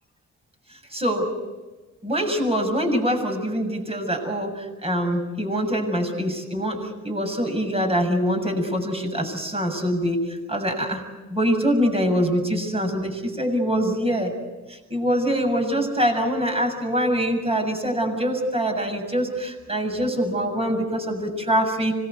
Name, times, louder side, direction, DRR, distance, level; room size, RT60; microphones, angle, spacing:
voice 1, 0.9-1.3 2.0-11.0 11.3-14.3 14.7-21.9, equal, 20° right, 4 dB, 7.2 m, -24 dB
25.5 x 20.5 x 8.1 m, 1.2 s
cardioid pair, 90°, 30 cm